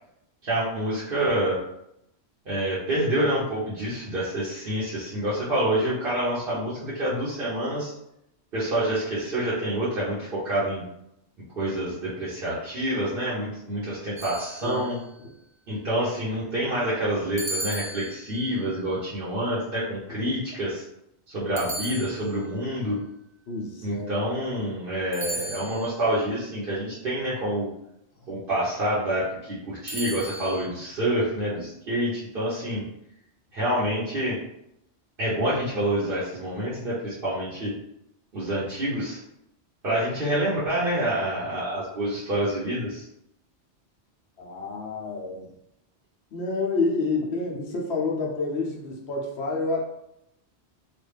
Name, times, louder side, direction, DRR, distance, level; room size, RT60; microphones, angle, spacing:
voice 1, 0.4-1.6 2.5-7.9 8.5-10.8 11.6-15.0 15.7-20.8 21.3-23.0 23.8-27.7 28.3-32.8 33.5-34.4 35.2-37.7 38.3-39.2 39.8-43.1, right 1 dB, 55° right, -9 dB, 1.0 m, -27 dB
sound 1, 14.2-15.1 17.4-18.6 21.6-22.6 25.1-26.1 29.9-30.7, right 1 dB, 25° right, 0.4 m, -36 dB
voice 2, 23.5-24.1 24.7-24.9 44.4-45.5 46.3-49.8, left 3 dB, 75° left, -2 dB, 1.0 m, -29 dB
3.1 x 2.4 x 3.3 m, 0.80 s
omnidirectional pair, 1.1 m